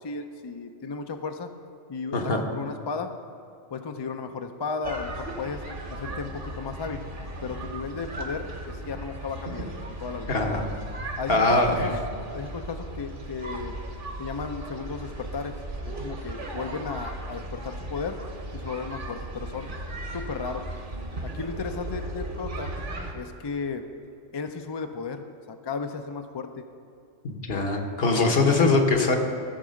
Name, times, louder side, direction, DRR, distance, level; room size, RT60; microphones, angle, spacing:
voice 1, 0.0-1.5 1.9-3.1 3.7-5.6 5.9-7.0 7.4-9.7 10.0-10.4 11.2-11.9 12.3-13.7 14.2-15.5 15.8-18.2 18.5-19.7 20.1-20.6 21.2-22.7 23.1-23.8 24.3-26.6 28.2-28.3, left 5 dB, 40° left, 6 dB, 0.4 m, -34 dB
voice 2, 2.1-2.4 10.3-10.7 11.3-11.9 27.2-29.2, left 3 dB, 60° left, 4 dB, 1.2 m, -22 dB
sound 1, 4.8-23.1, right 1 dB, 50° right, 1.3 m, -36 dB
14.0 x 4.8 x 6.3 m, 2.5 s
omnidirectional pair, 1.1 m